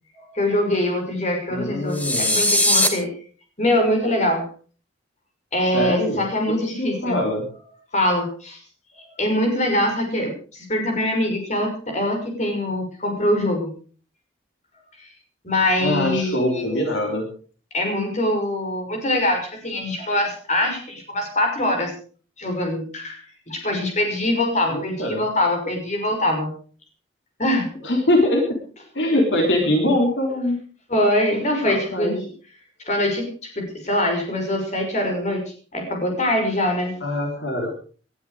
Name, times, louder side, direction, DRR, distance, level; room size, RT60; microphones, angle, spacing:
voice 1, 0.3-3.1 3.6-4.5 5.5-7.2 7.9-8.6 9.0-13.7 15.4-16.9 17.7-21.9 22.4-23.2 23.5-26.5 27.4-27.7 30.9-32.3 32.9-33.3 33.6-35.4 35.7-36.9, left 1 dB, 35° left, 3 dB, 5.9 m, -23 dB
voice 2, 1.5-2.4 5.6-7.5 15.8-17.3 24.7-25.2 27.8-28.6 28.9-30.6 31.6-32.1 37.0-37.7, left 1 dB, 70° left, 2 dB, 3.6 m, -23 dB
sound 1, 1.9-2.9, left 1 dB, 10° left, 2.2 m, -19 dB
19.5 x 12.5 x 5.0 m, 0.42 s
head